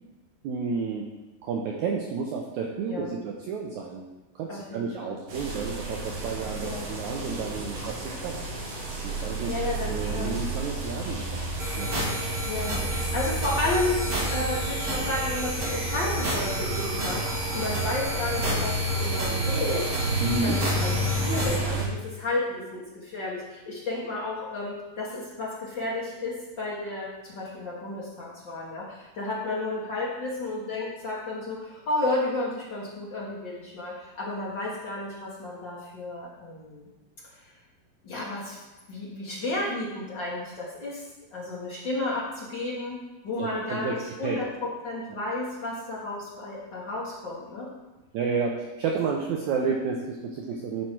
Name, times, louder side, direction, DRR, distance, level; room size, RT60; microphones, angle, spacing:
voice 1, 0.4-1.0 1.4-4.0 4.3-8.4 9.0-11.4 11.8-12.0 20.2-20.6 43.4-44.0 44.2-44.4 48.1-50.8, right 5 dB, 85° right, 0 dB, 1.6 m, -31 dB
voice 2, 4.5-5.2 6.6-6.8 9.5-10.3 12.5-14.0 14.3-20.0 20.4-36.9 38.0-38.6 38.9-41.0 41.3-43.0 43.2-47.7, left 2 dB, 70° left, -6 dB, 1.0 m, -32 dB
sound 1, 5.3-21.9, right 1 dB, 65° right, 3.4 m, -31 dB
sound 2, 11.6-21.6, right 1 dB, 35° right, 1.8 m, -31 dB
12.0 x 4.7 x 4.5 m, 1.1 s
omnidirectional pair, 4.4 m